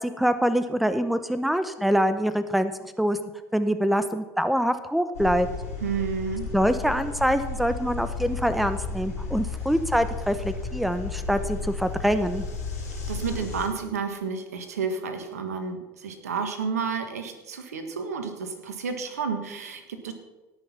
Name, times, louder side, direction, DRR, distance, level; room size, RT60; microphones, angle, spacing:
voice 1, 0.0-2.7 3.0-3.2 3.5-5.5 6.5-12.4, equal, ahead, 12 dB, 0.9 m, -24 dB
sound 1, 5.1-13.7, left 4 dB, 80° left, 4.7 m, -33 dB
voice 2, 5.8-6.4 12.9-20.1, right 5 dB, 80° right, 7 dB, 1.6 m, -31 dB
17.5 x 6.5 x 5.8 m, 1.1 s
hypercardioid pair, 70°, 8 cm